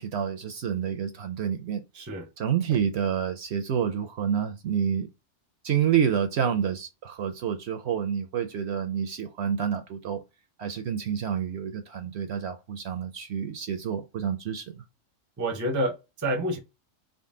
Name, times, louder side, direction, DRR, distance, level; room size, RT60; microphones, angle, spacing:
voice 1, 0.0-1.8 2.4-5.1 5.6-10.2 10.6-14.8, right 8 dB, 65° right, 0.7 m, -28 dB
voice 2, 1.9-2.3 15.4-16.6, right 1 dB, 20° right, 0.5 m, -28 dB
3.8 x 2.1 x 3.6 m
omnidirectional pair, 1.4 m